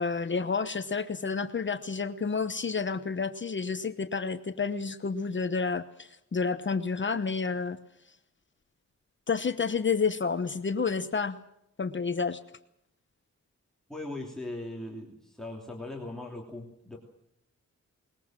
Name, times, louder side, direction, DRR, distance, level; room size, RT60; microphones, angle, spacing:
voice 1, 0.0-7.8 9.3-11.4 11.8-12.4, left 5 dB, 40° left, 10 dB, 1.0 m, -30 dB
voice 2, 13.9-17.0, left 2 dB, ahead, 0 dB, 3.0 m, -39 dB
21.5 x 21.0 x 7.5 m, 0.77 s
wide cardioid pair, 160°, 29 cm